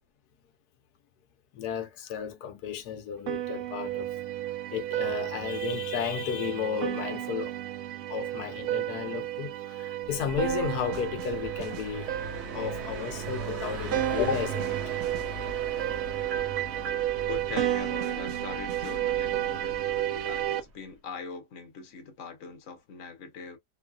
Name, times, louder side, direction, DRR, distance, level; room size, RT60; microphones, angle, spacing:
voice 1, 1.5-4.1 4.7-7.5 8.1-12.1 12.5-14.8, left 8 dB, 75° left, 1.2 m, -33 dB
sound 1, 3.3-20.6, right 13 dB, 65° right, 0.8 m, -32 dB
Car passing by, 10.1-20.7, right 3 dB, 50° right, 1.1 m, -40 dB
voice 2, 17.3-23.6, left 5 dB, 55° left, 1.1 m, -41 dB
3.1 x 2.4 x 2.2 m
omnidirectional pair, 1.7 m